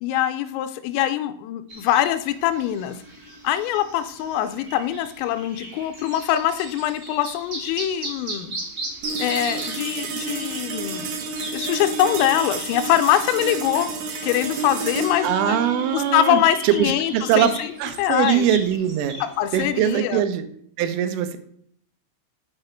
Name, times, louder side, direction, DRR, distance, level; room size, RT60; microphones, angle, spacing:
voice 1, 0.0-3.0 3.4-8.5 9.2-11.1 11.4-13.9 14.2-15.6 15.9-18.5 19.2-20.2, left 12 dB, 90° left, 11 dB, 3.3 m, -23 dB
sound 1, 1.7-19.9, right 1 dB, 45° right, 1.5 m, -37 dB
sound 2, 9.0-19.6, right 3 dB, 75° right, 2.6 m, -32 dB
voice 2, 15.2-17.5 17.8-19.1 19.5-20.5 20.8-21.4, right 10 dB, 90° right, 9 dB, 3.3 m, -22 dB
7.8 x 5.9 x 4.4 m, 0.65 s
omnidirectional pair, 5.8 m